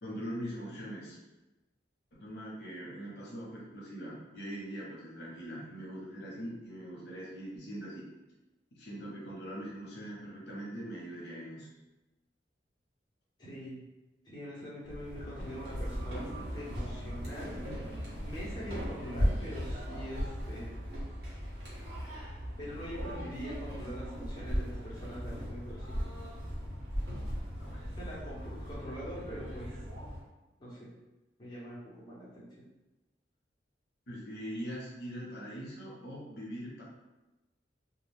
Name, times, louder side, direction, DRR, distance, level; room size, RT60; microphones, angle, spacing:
voice 1, 0.0-1.2 2.1-8.0 8.7-11.7 27.6-27.8 34.1-36.8, equal, 65° left, -4 dB, 0.8 m, -42 dB
voice 2, 13.4-13.9 14.2-17.6 18.2-20.7 22.6-26.0 27.9-29.8 30.6-30.9 31.4-32.5, equal, 25° left, -8 dB, 0.9 m, -43 dB
sound 1, 14.7-19.7, left 1 dB, 40° right, 1.1 m, -55 dB
sound 2, 14.8-30.2, equal, 65° right, 1.1 m, -37 dB
2.3 x 2.3 x 3.3 m, 1.0 s
head